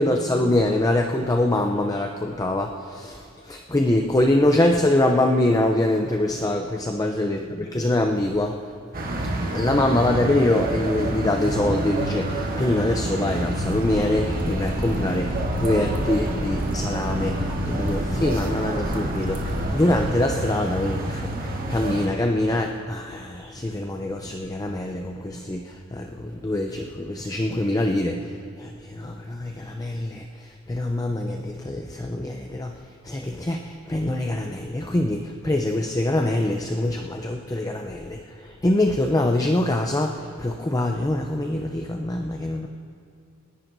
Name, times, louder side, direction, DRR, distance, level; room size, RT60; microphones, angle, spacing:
voice 1, 0.0-8.6 9.5-28.3 28.6-30.3 30.7-32.8 33.0-42.7, left 1 dB, 15° left, 3 dB, 0.5 m, -24 dB
sound 1, 8.9-22.1, right 1 dB, 40° right, 1.3 m, -28 dB
sound 2, 13.6-20.1, equal, 10° right, 1.2 m, -34 dB
28.5 x 10.5 x 2.6 m, 2.5 s
head